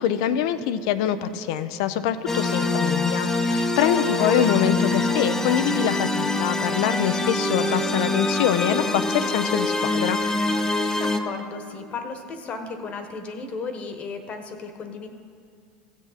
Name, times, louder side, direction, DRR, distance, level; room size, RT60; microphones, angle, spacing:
voice 1, 0.0-10.2, left 10 dB, 70° left, 12 dB, 0.5 m, -24 dB
sound 1, 2.3-11.2, left 2 dB, 15° left, 0.7 m, -24 dB
voice 2, 3.9-4.5 10.9-15.1, left 4 dB, 40° left, 6 dB, 1.2 m, -35 dB
15.5 x 6.3 x 4.1 m, 2.3 s
hypercardioid pair, 90°, 3 cm